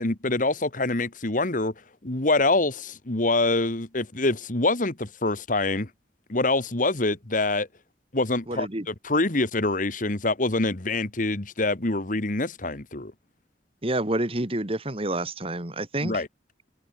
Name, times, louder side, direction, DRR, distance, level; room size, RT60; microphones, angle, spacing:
voice 1, 0.0-1.7 2.0-5.9 6.3-7.7 8.1-13.1 16.0-16.3, left 2 dB, 50° left, 1.9 m, -25 dB
voice 2, 8.5-8.9 13.8-16.2, right 1 dB, 30° right, 2.2 m, -28 dB
head